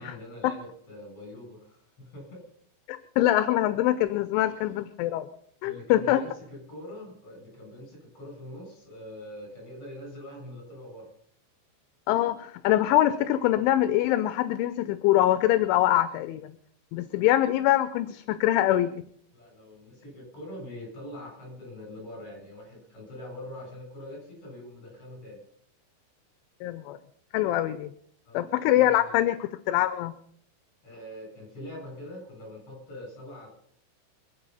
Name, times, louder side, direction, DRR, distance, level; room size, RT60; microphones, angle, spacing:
voice 1, 0.0-2.5 5.6-11.1 17.1-17.3 19.3-25.4 28.2-29.3 30.8-33.5, left 1 dB, 30° left, 0 dB, 8.9 m, -43 dB
voice 2, 2.9-5.3 5.6-6.2 12.1-16.5 16.9-19.0 26.6-27.0 27.3-27.9 28.3-30.1, left 14 dB, 80° left, 12 dB, 3.0 m, -24 dB
26.5 x 9.1 x 5.6 m, 0.64 s
omnidirectional pair, 5.8 m